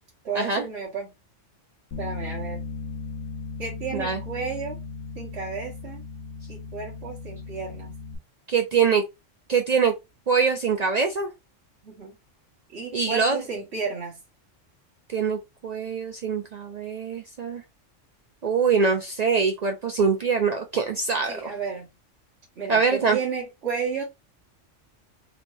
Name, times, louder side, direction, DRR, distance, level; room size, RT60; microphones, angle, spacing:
voice 1, 0.2-1.1 2.0-2.6 3.6-4.8 5.2-6.0 6.5-7.9 11.8-12.2 12.7-14.2 21.3-21.9 22.6-24.0, right 5 dB, 60° right, 1.5 m, -32 dB
Bass guitar, 1.9-8.2, left 4 dB, 80° left, 1.2 m, -37 dB
voice 2, 8.5-9.0 9.5-9.9 10.3-11.3 12.9-13.4 15.1-17.6 18.4-21.5 22.7-23.2, right 5 dB, 75° right, 0.3 m, -23 dB
3.4 x 3.1 x 2.6 m
omnidirectional pair, 1.3 m